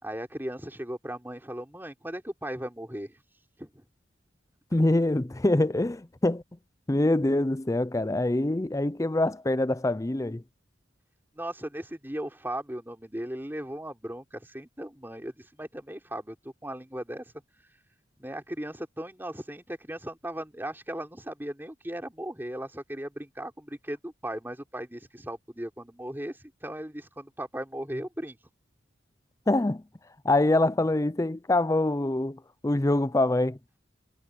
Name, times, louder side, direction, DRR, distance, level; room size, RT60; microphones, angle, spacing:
voice 1, 0.0-3.2 3.6-3.9 11.4-17.3 18.2-28.4, right 1 dB, 10° right, 3.7 m, -37 dB
voice 2, 4.7-6.4 6.9-10.4 29.5-29.8 30.2-33.6, left 2 dB, 15° left, 0.5 m, -25 dB
head